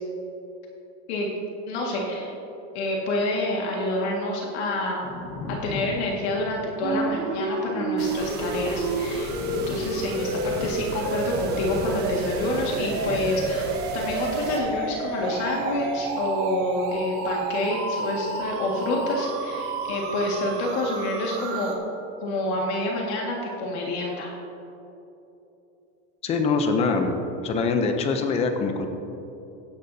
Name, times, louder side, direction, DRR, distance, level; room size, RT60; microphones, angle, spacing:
voice 1, 1.7-2.3 2.7-5.1 5.5-21.7 22.2-24.3, left 1 dB, 60° left, -2 dB, 1.9 m, -28 dB
Thunder, 4.8-19.2 19.5-20.8, left 2 dB, 40° left, 1.2 m, -41 dB
sound 1, 6.8-21.8, right 3 dB, 55° right, 1.9 m, -30 dB
sound 2, 8.0-14.6, right 3 dB, 25° right, 1.2 m, -38 dB
voice 2, 26.2-27.1 27.4-28.9, left 4 dB, 15° left, 6 dB, 0.5 m, -23 dB
16.5 x 10.0 x 2.7 m, 3.0 s
supercardioid pair, 170°, 37 cm